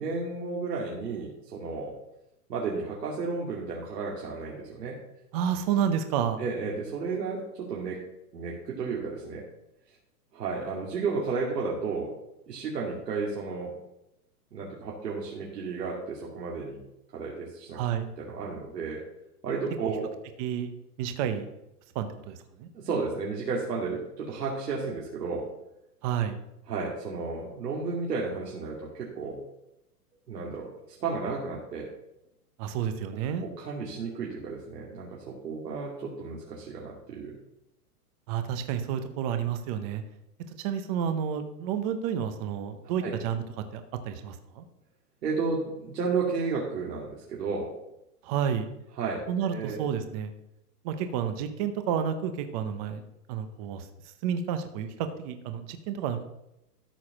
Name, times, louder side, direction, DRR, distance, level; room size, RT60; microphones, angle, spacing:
voice 1, 0.0-1.9 2.5-5.0 6.4-8.0 8.3-9.4 10.3-12.1 12.5-13.9 14.5-16.8 17.1-17.8 18.2-19.0 19.4-20.1 22.7-25.5 26.7-29.4 30.3-30.7 31.0-31.9 33.4-37.4 43.0-43.1 45.2-47.7 49.0-49.2 49.5-49.8, right 4 dB, 85° right, -3 dB, 2.6 m, -32 dB
voice 2, 5.3-6.4 17.7-18.1 20.4-20.7 21.0-21.5 21.9-22.7 26.0-26.4 32.6-33.5 38.3-40.0 40.6-43.4 43.7-44.7 48.2-48.7 49.3-50.3 50.8-53.0 53.3-53.9 54.2-56.3, right 8 dB, 25° right, 8 dB, 0.7 m, -30 dB
13.0 x 4.8 x 6.0 m, 0.86 s
hypercardioid pair, 155°, 47 cm